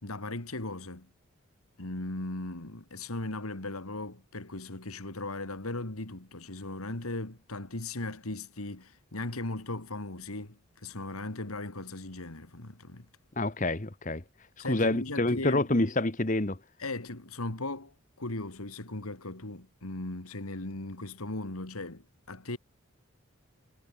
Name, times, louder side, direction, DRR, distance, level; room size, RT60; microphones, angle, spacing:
voice 1, 0.0-1.1 1.8-13.1 14.6-15.7 16.8-22.6, left 2 dB, 90° left, 2.7 m, -38 dB
voice 2, 13.4-14.2 14.7-16.6, left 2 dB, 35° left, 1.4 m, -27 dB
head